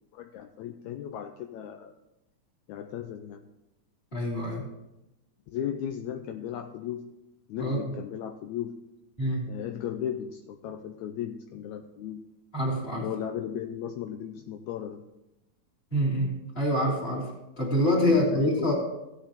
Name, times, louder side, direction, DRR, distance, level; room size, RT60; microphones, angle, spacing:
voice 1, 0.1-1.9 2.7-3.5 5.5-7.1 7.5-8.8 9.5-12.2 13.0-15.0 18.1-18.7, left 9 dB, 80° left, 5 dB, 1.8 m, -36 dB
voice 2, 4.1-4.6 7.6-7.8 9.2-9.5 12.5-13.0 15.9-18.7, equal, 20° left, -4 dB, 3.1 m, -26 dB
16.5 x 9.0 x 3.0 m, 0.94 s
omnidirectional pair, 3.6 m